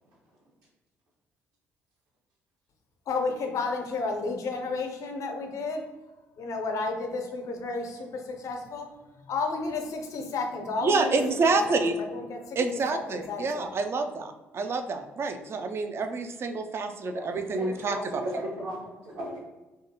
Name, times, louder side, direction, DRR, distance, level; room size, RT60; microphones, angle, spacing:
voice 1, 3.1-5.8 6.4-8.9 9.3-11.2 11.7-11.8 12.1-12.6 12.9-13.7, left 3 dB, 55° left, 3 dB, 0.5 m, -32 dB
voice 2, 10.8-12.0 12.6-18.2, right 3 dB, 40° right, 7 dB, 0.3 m, -28 dB
voice 3, 17.0-19.4, equal, 65° right, -3 dB, 0.9 m, -37 dB
2.5 x 2.3 x 2.8 m, 1.2 s
hypercardioid pair, 45°, 7 cm